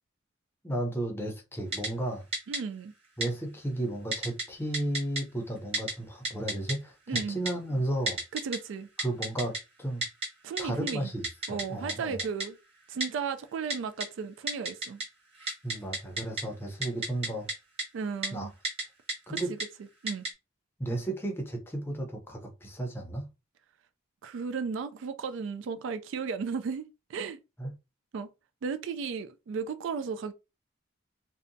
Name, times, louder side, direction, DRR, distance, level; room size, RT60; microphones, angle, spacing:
voice 1, 0.6-2.2 3.2-8.2 9.0-10.1 10.6-12.2 15.6-17.5 18.3-18.5 19.3-19.5 20.8-23.3 27.6-27.7, right 1 dB, 10° left, 0.5 m, -33 dB
Typing, 1.7-1.9 2.3-2.6 3.2-3.3 4.1-4.4 4.7-5.2 5.7-5.9 6.2-6.7 7.1-7.5 8.1-8.6 9.0-9.6 10.0-10.3 10.6-10.7 10.9-11.0 11.2-11.6 11.9-12.0 12.2-12.5 13.0-13.1 13.7-14.1 14.5-15.0 15.3-16.4 16.8-17.5 17.8-17.9 18.2-18.3 18.6-18.8 19.1-19.6 20.1-20.3, right 2 dB, 30° right, 1.1 m, -31 dB
voice 2, 2.5-2.9 7.1-7.4 8.3-8.9 10.4-11.1 11.5-12.6 12.9-15.0 17.9-18.5 19.3-19.6 20.0-20.3 24.2-27.4 28.1-28.3 28.6-30.3, right 5 dB, 70° right, 0.3 m, -35 dB
2.7 x 2.1 x 2.6 m
head